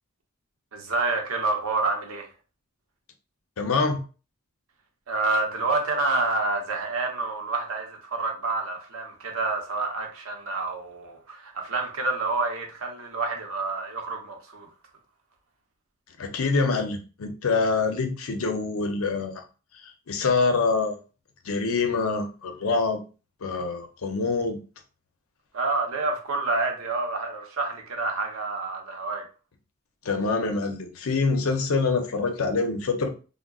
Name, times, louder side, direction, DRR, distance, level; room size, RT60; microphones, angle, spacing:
voice 1, 0.7-2.3 5.1-14.7 25.5-29.2, right 3 dB, 85° right, 0.8 m, -28 dB
voice 2, 3.6-4.0 16.2-19.3 19.8-21.0 21.4-23.0 23.4-24.6 30.0-33.1, left 4 dB, 80° left, 0.6 m, -25 dB
3.6 x 2.1 x 2.3 m
head